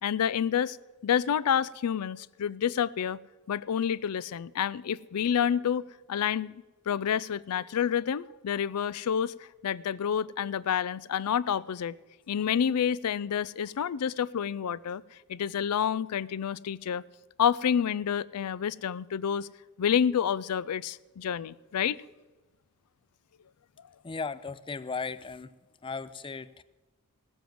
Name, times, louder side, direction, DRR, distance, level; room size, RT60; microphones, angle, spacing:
voice 1, 0.0-0.8 1.0-3.2 3.5-6.5 6.9-9.3 9.6-12.0 12.3-15.0 15.3-17.0 17.4-19.5 19.8-22.0, left 8 dB, 85° left, 21 dB, 0.4 m, -28 dB
voice 2, 24.0-25.6 25.8-26.6, left 4 dB, 20° left, 16 dB, 0.4 m, -36 dB
17.5 x 7.2 x 7.7 m, 1.2 s
head